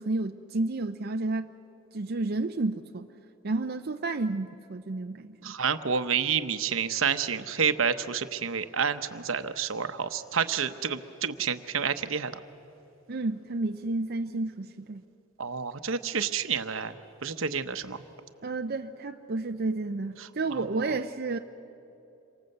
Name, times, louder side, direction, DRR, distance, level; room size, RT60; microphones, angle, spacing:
voice 1, 0.0-1.5 1.9-3.1 3.4-5.5 13.1-15.0 18.4-21.4, right 3 dB, 50° right, 6 dB, 0.6 m, -31 dB
voice 2, 5.4-12.3 15.4-16.9 17.2-18.0 20.2-21.0, right 6 dB, 75° right, 10 dB, 1.0 m, -29 dB
27.5 x 24.5 x 7.9 m, 2.9 s
head